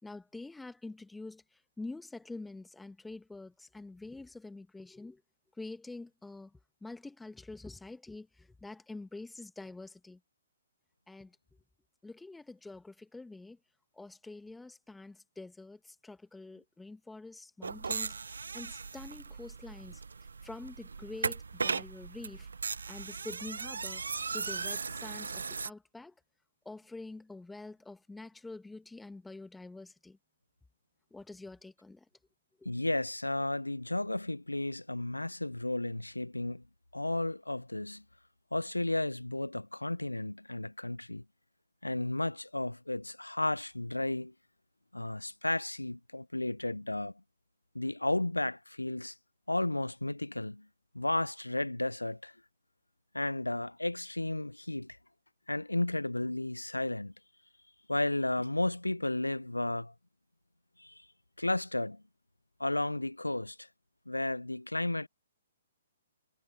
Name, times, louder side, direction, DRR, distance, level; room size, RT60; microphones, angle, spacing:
voice 1, 0.0-5.2 5.6-10.2 11.1-11.4 12.0-13.6 13.9-20.0 20.4-22.5 22.9-24.0 24.3-26.1 26.7-30.2 31.1-32.1 32.6-32.7, left 2 dB, 5° left, 2.0 m, -46 dB
sound 1, 17.6-25.7, right 5 dB, 70° right, 1.1 m, -37 dB
voice 2, 32.7-36.6 36.9-38.0 38.5-41.2 41.8-44.3 44.9-47.1 47.7-49.2 49.5-50.7 50.9-52.4 53.1-55.0 55.5-57.1 57.9-59.9 60.8-61.1 61.4-62.0 62.6-63.7 64.1-65.1, left 1 dB, 85° left, 0.5 m, -33 dB
figure-of-eight pair, 125°, 0 cm